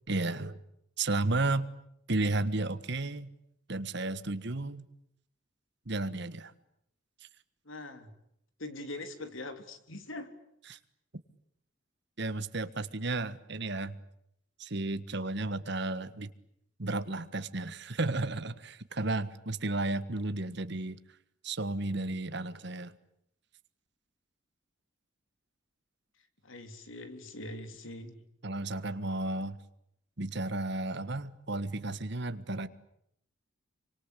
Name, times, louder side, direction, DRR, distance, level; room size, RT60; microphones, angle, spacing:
voice 1, 0.1-0.6 1.0-1.7 2.1-3.3 3.7-4.9 5.8-6.5 10.7-10.8 12.2-14.0 14.6-16.3 16.8-21.0 21.4-22.9 28.4-29.6 30.2-32.7, right 2 dB, 60° right, 12 dB, 1.5 m, -33 dB
voice 2, 7.7-8.1 8.6-10.3 26.4-28.2, left 2 dB, 85° left, 8 dB, 3.4 m, -42 dB
28.0 x 25.0 x 8.4 m, 0.75 s
head